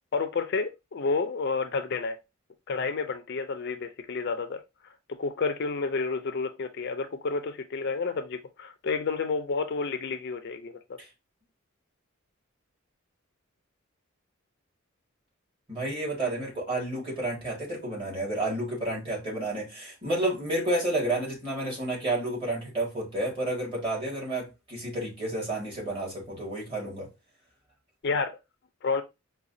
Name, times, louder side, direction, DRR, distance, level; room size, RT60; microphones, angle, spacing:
voice 1, 0.1-2.2 2.7-4.6 5.1-11.0 28.0-28.4 28.8-29.0, left 4 dB, 50° left, 0.4 m, -30 dB
voice 2, 15.7-27.1, right 1 dB, 25° right, 1.7 m, -30 dB
4.9 x 2.2 x 2.6 m
head